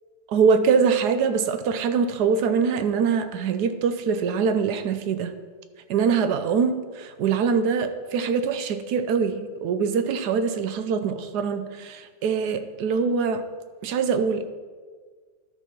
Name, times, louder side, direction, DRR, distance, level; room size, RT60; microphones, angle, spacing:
voice 1, 0.3-5.4 5.9-13.5 13.8-14.5, right 6 dB, 70° right, 9 dB, 1.1 m, -23 dB
12.5 x 4.3 x 6.0 m, 1.5 s
omnidirectional pair, 2.0 m